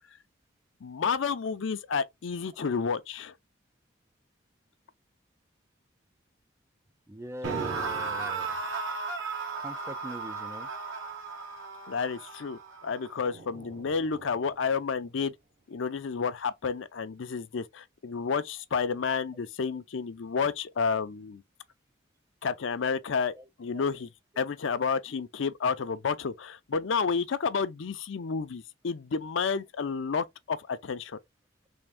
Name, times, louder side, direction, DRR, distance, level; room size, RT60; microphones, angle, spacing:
voice 1, 0.8-3.3 11.9-15.3 15.7-21.4 22.4-23.3 23.6-24.1 24.4-31.2, left 5 dB, 75° left, 0.5 m, -30 dB
voice 2, 7.1-8.5 9.6-10.7 20.9-21.0 23.4-23.5 23.7-23.8, right 1 dB, 15° right, 0.3 m, -42 dB
Man being shot out of a cannon, 7.4-14.5, right 4 dB, 75° right, 1.0 m, -36 dB
3.5 x 2.6 x 3.4 m
head